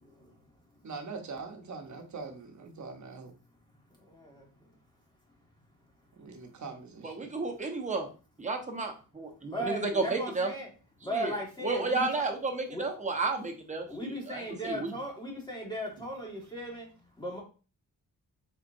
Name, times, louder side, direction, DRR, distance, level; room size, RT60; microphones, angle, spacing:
voice 1, 0.8-3.3 6.2-7.3, right 4 dB, 55° right, 4 dB, 0.9 m, -42 dB
voice 2, 4.0-4.5 9.5-10.7 11.0-12.2 12.7-12.8 13.9-16.9 17.2-17.4, equal, 15° left, -2 dB, 1.5 m, -37 dB
voice 3, 7.0-8.1 8.4-10.5 11.1-11.3 11.6-14.9, right 3 dB, 20° right, 2 dB, 0.8 m, -32 dB
4.1 x 3.7 x 2.6 m, 0.36 s
wide cardioid pair, 130°, 34 cm